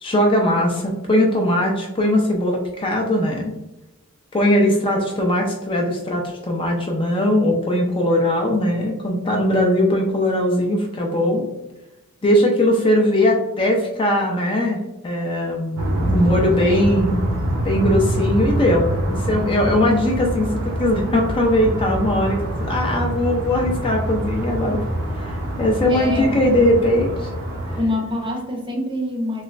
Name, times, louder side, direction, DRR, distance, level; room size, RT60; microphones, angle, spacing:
voice 1, 0.0-3.5 4.3-11.4 12.2-15.8 16.0-17.2 17.6-24.8 25.2-27.3, left 1 dB, 25° left, 0 dB, 0.4 m, -20 dB
sound 1, 15.8-27.8, right 1 dB, 65° right, 0.7 m, -25 dB
voice 2, 25.9-26.4 27.8-29.4, left 1 dB, 20° right, 0 dB, 0.7 m, -25 dB
3.1 x 2.9 x 2.5 m, 0.95 s
head